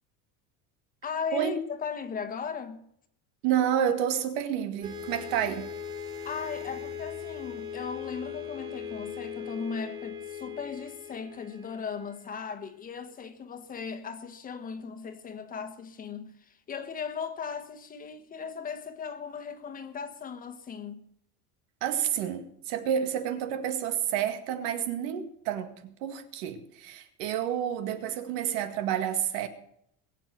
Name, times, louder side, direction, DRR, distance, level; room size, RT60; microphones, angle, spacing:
voice 1, 1.0-2.8 6.2-21.1, left 6 dB, 25° left, 1.3 m, -37 dB
voice 2, 3.4-5.7 21.8-25.8 26.0-29.5, right 9 dB, 90° right, 2.0 m, -29 dB
sound 1, 4.8-12.6, left 7 dB, 30° right, 3.4 m, -39 dB
22.0 x 7.5 x 6.8 m
cardioid pair, 165°, 32 cm